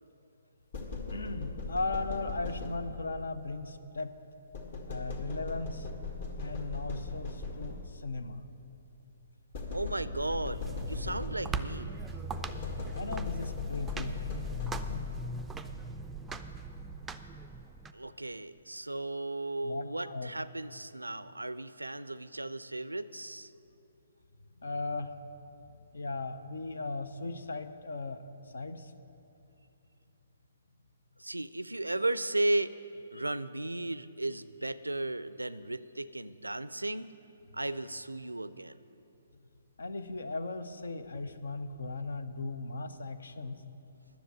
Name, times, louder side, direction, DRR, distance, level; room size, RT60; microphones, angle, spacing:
sound 1, 0.7-3.2 4.5-8.1 9.5-11.7 12.3-15.4, left 4 dB, 50° left, 1.7 m, -38 dB
voice 1, 1.1-4.2 4.9-5.9 6.4-8.4 12.9-14.2 19.6-20.4 24.6-25.2 25.9-28.2 28.5-28.9 33.1-33.2 39.8-43.6, left 3 dB, 65° left, 11 dB, 0.7 m, -37 dB
voice 2, 9.7-12.0 17.9-23.5 31.2-32.7 33.1-37.1 37.5-38.8 41.1-41.2, right 2 dB, 85° right, 16 dB, 0.4 m, -35 dB
sound 2, 10.5-17.9, right 3 dB, 10° right, 0.4 m, -40 dB
10.0 x 7.2 x 8.8 m, 2.8 s
figure-of-eight pair, 130°, 0 cm